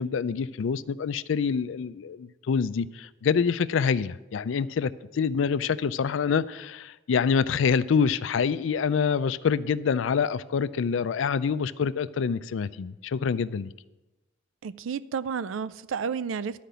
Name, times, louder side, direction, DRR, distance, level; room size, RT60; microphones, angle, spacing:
voice 1, 0.0-13.7, left 6 dB, 65° left, 15 dB, 0.4 m, -26 dB
voice 2, 14.6-16.6, right 6 dB, 70° right, 16 dB, 0.4 m, -31 dB
12.0 x 5.1 x 6.8 m, 1.1 s
head